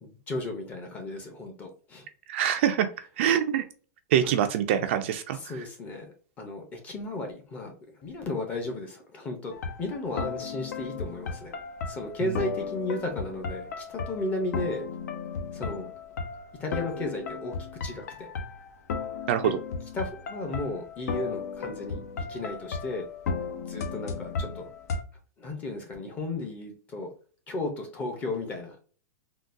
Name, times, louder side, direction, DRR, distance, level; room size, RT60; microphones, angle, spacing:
voice 1, 0.0-2.1 4.2-4.3 5.4-7.7 8.0-9.5 9.8-11.5 11.9-14.9 15.5-15.9 16.6-17.5 17.8-18.3 19.9-23.1 23.7-24.7 25.4-27.1 27.5-28.8, left 2 dB, 15° left, 3 dB, 0.6 m, -34 dB
voice 2, 2.3-2.9 3.2-3.6 4.1-5.6 12.2-12.4 19.3-19.6, right 9 dB, 45° right, 8 dB, 0.3 m, -25 dB
sound 1, 9.5-25.0, left 5 dB, 75° left, 0.7 m, -35 dB
3.8 x 2.2 x 2.5 m, 0.40 s
supercardioid pair, 170°, 9 cm